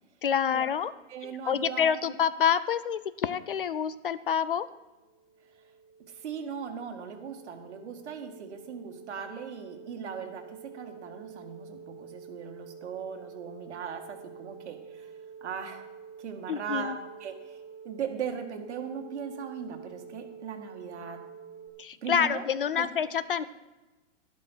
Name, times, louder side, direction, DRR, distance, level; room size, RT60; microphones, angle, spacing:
voice 1, 0.2-0.9 1.2-4.7 16.5-17.0 21.8-23.4, left 8 dB, 45° left, 17 dB, 0.4 m, -27 dB
voice 2, 1.1-2.1 6.1-15.1 15.4-15.8 16.2-16.9 17.2-21.2 22.0-22.4 22.8-22.9, right 7 dB, 60° right, 5 dB, 2.0 m, -38 dB
sound 1, 4.7-21.7, right 6 dB, 20° left, 1.7 m, -48 dB
12.5 x 12.0 x 4.5 m, 1.1 s
hypercardioid pair, 165°, 38 cm